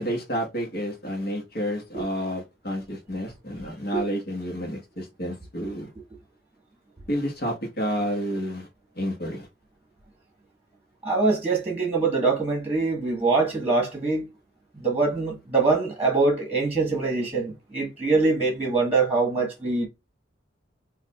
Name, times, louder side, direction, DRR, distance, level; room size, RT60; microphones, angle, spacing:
voice 1, 0.0-5.9 7.1-8.7 9.0-9.5, equal, 50° left, 1.4 m, -30 dB
voice 2, 11.0-14.2 14.8-19.9, right 3 dB, 10° right, 1.5 m, -23 dB
4.7 x 2.6 x 2.3 m
head